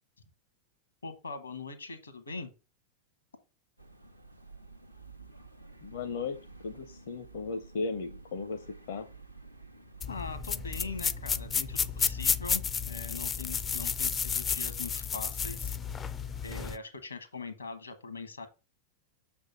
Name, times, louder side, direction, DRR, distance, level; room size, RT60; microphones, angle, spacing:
voice 1, 1.0-2.5 10.1-15.7 16.4-18.5, left 4 dB, 80° left, 9 dB, 1.2 m, -41 dB
sound 1, 3.8-16.5, right 4 dB, 90° right, 0.7 m, -52 dB
voice 2, 5.8-6.4 6.6-9.1, left 4 dB, 55° left, 8 dB, 0.7 m, -36 dB
sound 2, 10.0-16.8, left 6 dB, 20° left, 0.4 m, -32 dB
6.5 x 3.5 x 6.0 m, 0.30 s
figure-of-eight pair, 90°, 0 cm